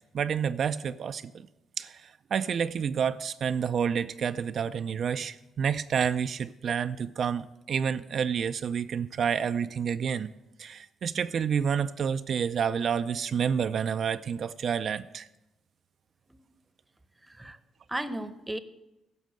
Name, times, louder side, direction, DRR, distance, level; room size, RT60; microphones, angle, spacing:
voice 1, 0.1-1.5 1.8-10.3 10.6-15.3, right 7 dB, 55° right, 0.4 m, -29 dB
voice 2, 17.2-17.6 17.9-18.6, right 1 dB, 10° right, 0.8 m, -35 dB
10.5 x 6.4 x 7.7 m
cardioid pair, 90°, 0 cm